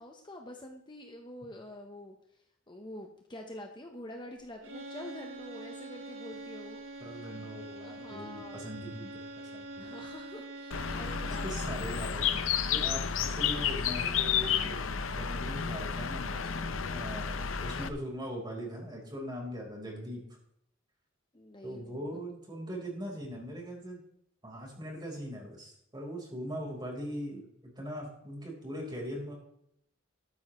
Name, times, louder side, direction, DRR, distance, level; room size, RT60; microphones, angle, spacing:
voice 1, 0.0-2.2 2.7-7.2 7.8-8.7 9.8-11.7 21.3-22.2, left 1 dB, 25° left, 3 dB, 1.0 m, -46 dB
sound 1, 4.6-11.8, right 2 dB, 80° right, 1.9 m, -44 dB
voice 2, 7.0-9.1 9.5-9.9 11.2-14.8 15.1-20.2 21.6-24.0 24.4-29.3, equal, 20° right, -1 dB, 4.4 m, -41 dB
Bird, 10.7-17.9, left 7 dB, 75° left, 0.8 m, -31 dB
13.0 x 12.5 x 3.2 m, 0.72 s
head